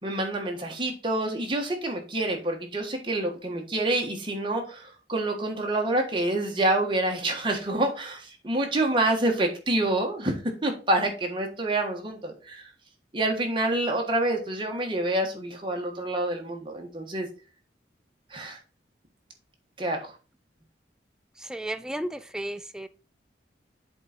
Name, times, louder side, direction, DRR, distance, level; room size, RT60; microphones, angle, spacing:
voice 1, 0.0-10.4 10.6-12.6 13.1-17.3 18.3-18.6 19.8-20.0, right 1 dB, 30° right, 1.5 m, -27 dB
voice 2, 21.4-22.9, right 1 dB, 5° right, 0.3 m, -34 dB
7.8 x 3.9 x 4.4 m
head